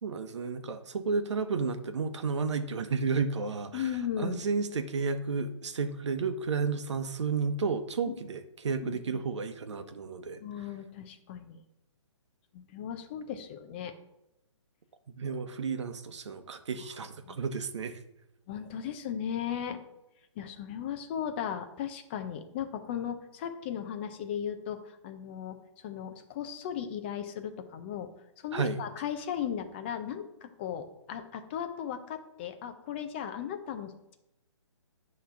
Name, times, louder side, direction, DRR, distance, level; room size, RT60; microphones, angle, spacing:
voice 1, 0.0-3.9 4.2-10.4 15.1-18.0 28.5-28.8, right 5 dB, 70° right, 9 dB, 0.9 m, -32 dB
voice 2, 3.7-4.4 8.8-9.2 10.4-11.6 12.5-13.9 17.2-17.4 18.5-19.8 20.4-25.6 25.8-28.1 28.4-34.2, left 9 dB, 20° left, 7 dB, 0.6 m, -36 dB
9.1 x 3.2 x 5.7 m, 0.88 s
hypercardioid pair, 160°, 16 cm